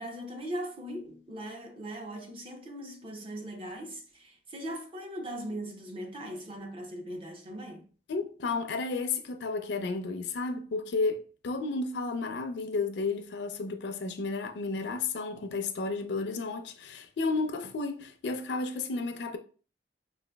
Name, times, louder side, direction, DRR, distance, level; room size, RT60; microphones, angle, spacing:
voice 1, 0.0-7.8, equal, 30° right, 0.6 m, -39 dB
voice 2, 8.1-19.4, left 3 dB, 85° left, 0.4 m, -32 dB
4.8 x 2.4 x 2.2 m
head